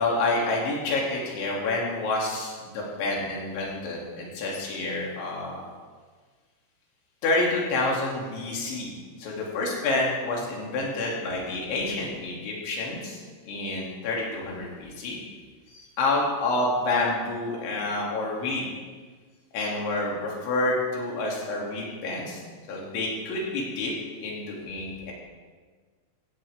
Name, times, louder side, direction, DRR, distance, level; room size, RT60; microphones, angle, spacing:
voice 1, 0.0-5.6 7.2-8.9 9.2-13.2 13.5-15.2 15.7-18.7 19.5-22.4 22.7-23.9 24.2-25.1, left 2 dB, 70° left, -3 dB, 5.0 m, -28 dB
16.5 x 16.0 x 3.6 m, 1.5 s
omnidirectional pair, 5.7 m